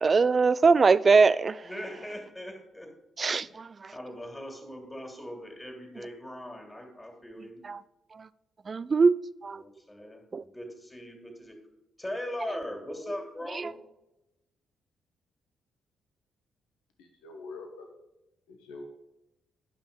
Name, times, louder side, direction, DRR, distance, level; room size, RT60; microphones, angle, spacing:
voice 1, 0.0-1.6 3.2-3.7 7.7-7.8 8.7-9.2 9.4-9.6 10.3-10.4, right 4 dB, 40° right, 0.3 m, -21 dB
voice 2, 1.6-2.9 3.4-3.6 3.9-7.6 9.5-11.6 12.0-13.7, left 1 dB, 15° left, 2.5 m, -40 dB
voice 3, 17.0-17.9 18.5-18.8, left 3 dB, 80° left, 1.0 m, -44 dB
10.0 x 5.8 x 5.1 m
hypercardioid pair, 40°, 0 cm